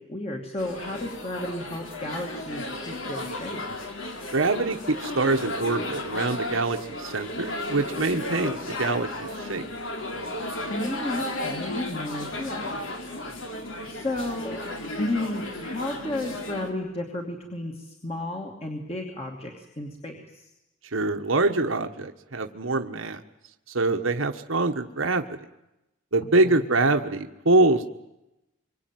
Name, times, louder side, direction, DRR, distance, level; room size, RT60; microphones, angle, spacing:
voice 1, 0.0-3.6 10.7-12.8 13.9-14.6 15.0-20.5 26.2-26.6, left 1 dB, 30° left, 1 dB, 2.7 m, -33 dB
sound 1, 0.6-16.7, left 1 dB, 80° left, 3.6 m, -34 dB
voice 2, 4.3-9.6 20.9-23.2 23.7-25.4 26.1-27.9, right 2 dB, 85° right, 6 dB, 1.4 m, -24 dB
26.0 x 24.0 x 9.3 m, 0.92 s
head